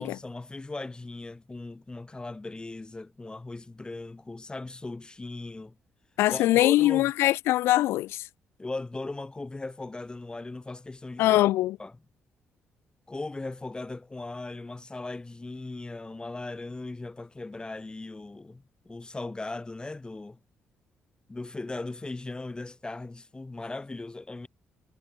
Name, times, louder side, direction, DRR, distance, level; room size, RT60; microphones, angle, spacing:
voice 1, 0.0-5.8 6.3-7.1 8.6-11.4 11.8-11.9 13.1-20.4 21.3-24.5, left 2 dB, 20° left, 4.0 m, -38 dB
voice 2, 6.2-8.2 11.2-11.8, left 16 dB, 90° left, 1.0 m, -22 dB
cardioid pair, 70°, 4 cm